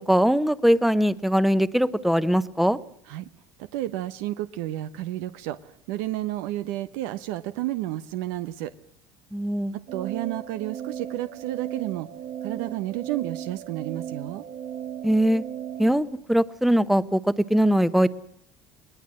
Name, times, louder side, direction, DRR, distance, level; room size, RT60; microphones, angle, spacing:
voice 1, 0.1-2.8 9.3-9.7 15.0-15.4 15.8-18.1, equal, ahead, 15 dB, 1.0 m, -21 dB
voice 2, 3.6-8.7 9.9-12.1 12.4-14.4, right 14 dB, 85° right, 11 dB, 1.0 m, -31 dB
sound 1, 9.9-16.0, right 9 dB, 55° right, 3.6 m, -36 dB
21.5 x 19.0 x 7.7 m, 0.72 s
supercardioid pair, 110°, 11 cm